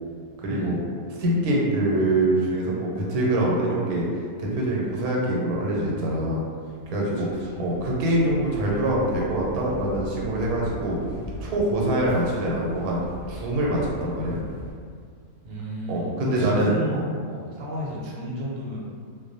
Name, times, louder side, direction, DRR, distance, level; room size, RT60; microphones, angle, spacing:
voice 1, 0.4-0.8 1.2-4.1 4.4-6.4 6.9-7.3 7.6-11.0 11.4-13.0 13.3-14.4 15.9-17.0, right 1 dB, 85° right, -4 dB, 1.1 m, -24 dB
sound 1, 6.8-14.7, equal, 35° left, 0.6 m, -39 dB
voice 2, 7.2-7.6 15.4-18.8, equal, 65° right, -5 dB, 0.8 m, -32 dB
2.4 x 2.0 x 2.6 m, 2.1 s
omnidirectional pair, 1.6 m